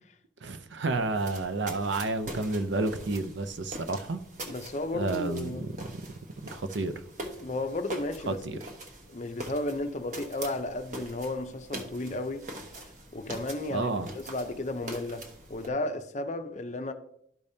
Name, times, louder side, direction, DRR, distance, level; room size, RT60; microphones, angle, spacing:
voice 1, 0.4-4.2 4.9-6.1 6.5-6.9 8.3-8.6 13.7-14.1, right 2 dB, 80° right, 0.6 m, -31 dB
sound 1, 0.8-15.7, right 1 dB, 40° right, 1.0 m, -43 dB
voice 2, 4.5-5.7 7.4-8.6 9.1-12.5 13.1-16.9, left 2 dB, 40° left, 0.6 m, -34 dB
12.5 x 5.2 x 2.7 m
head